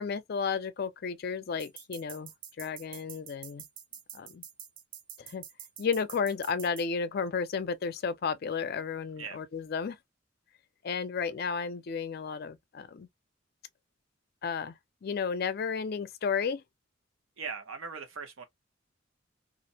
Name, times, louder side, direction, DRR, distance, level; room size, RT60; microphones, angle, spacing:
voice 1, 0.0-2.3 2.6-3.6 4.1-4.4 5.2-5.4 5.8-10.0 10.8-13.1 14.4-14.8 15.0-16.6, left 5 dB, 50° left, 0.4 m, -33 dB
sound 1, 1.6-6.8, right 9 dB, 45° right, 0.4 m, -46 dB
voice 2, 17.4-18.4, right 5 dB, 85° right, 0.8 m, -39 dB
2.4 x 2.0 x 2.6 m
head